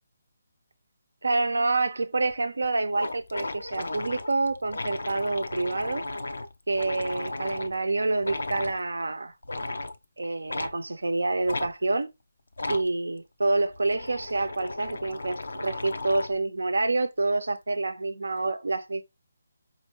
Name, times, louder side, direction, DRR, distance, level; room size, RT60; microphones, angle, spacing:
voice 1, 1.2-6.0 6.7-9.3 10.2-12.1 12.7-19.0, right 3 dB, 80° right, 0.6 m, -27 dB
sound 1, 2.3-2.4 2.6-2.7 2.9-7.7 8.2-8.8 9.4-10.0 10.5-10.7 11.5-11.7 12.5-12.9 13.6-16.4, left 2 dB, 75° left, 0.4 m, -35 dB
4.3 x 2.6 x 2.9 m
figure-of-eight pair, 150°, 0 cm